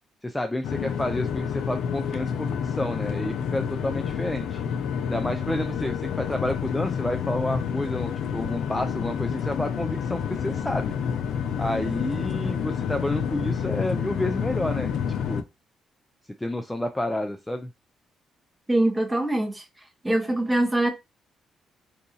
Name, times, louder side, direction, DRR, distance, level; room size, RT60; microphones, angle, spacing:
voice 1, 0.2-4.6 5.1-10.9 11.6-14.9 15.3-15.4 16.4-17.7, left 1 dB, 10° left, 0.4 m, -30 dB
sound 1, 0.6-15.4, left 7 dB, 75° left, 0.4 m, -29 dB
voice 2, 18.7-19.6 20.0-20.9, right 1 dB, 10° right, 0.8 m, -23 dB
2.8 x 2.3 x 3.8 m
cardioid pair, 90°, 0 cm